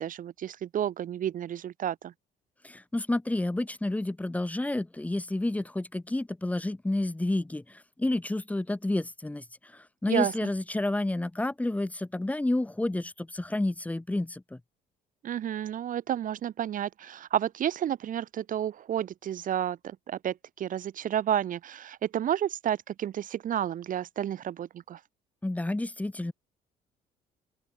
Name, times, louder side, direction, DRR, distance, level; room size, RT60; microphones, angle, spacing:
voice 1, 0.0-2.1 10.1-10.3 15.2-25.0, right 10 dB, 50° right, 1.3 m, -31 dB
voice 2, 2.6-14.6 25.4-26.3, left 1 dB, 10° left, 1.6 m, -30 dB
open air
cardioid pair, 110°, 17 cm